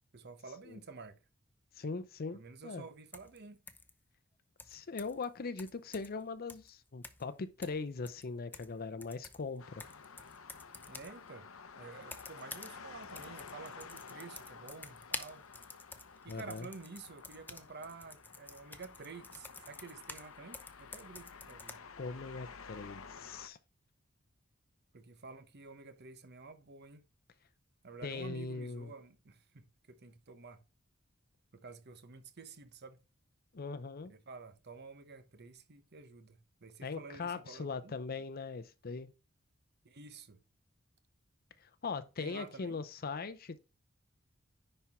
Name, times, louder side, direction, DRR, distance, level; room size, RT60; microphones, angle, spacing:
voice 1, 0.1-1.2 2.3-3.6 10.9-11.5 11.8-15.5 16.2-21.8 24.9-27.1 27.8-30.6 31.5-33.0 34.1-37.9 39.8-40.4 42.2-42.8, right 4 dB, 55° right, 0.9 m, -50 dB
voice 2, 1.8-2.8 4.7-9.8 16.3-16.7 22.0-23.6 28.0-28.9 33.5-34.1 36.8-39.1 41.6-43.6, left 4 dB, 45° left, 0.6 m, -40 dB
sound 1, 3.1-3.4 3.7-3.9 4.6-5.2 5.6-6.2 6.5-6.7 7.0-7.3 7.6-8.8 9.0-11.2 12.0-12.8 13.0-20.3 20.5-21.8, left 3 dB, 10° left, 0.7 m, -49 dB
sound 2, 9.6-23.5, left 5 dB, 80° left, 0.8 m, -52 dB
10.0 x 4.4 x 3.5 m
head